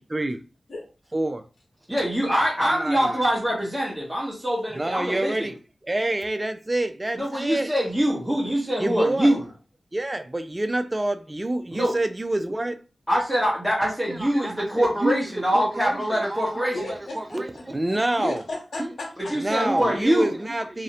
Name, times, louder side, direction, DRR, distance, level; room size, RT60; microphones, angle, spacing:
voice 1, 1.1-1.4 2.6-3.1 4.7-5.5 5.9-7.7 8.8-9.3 9.9-12.8 14.1-15.2 15.5-15.9 16.3-16.7 17.2-18.4 19.4-20.8, right 1 dB, 30° right, 0.4 m, -27 dB
voice 2, 1.9-5.5 7.1-9.4 11.7-11.9 13.1-16.8 19.3-20.3, equal, 5° right, 1.0 m, -24 dB
voice 3, 16.7-17.6 18.2-19.6, left 2 dB, 80° left, 0.8 m, -35 dB
2.5 x 2.0 x 2.8 m
cardioid pair, 45°, 0 cm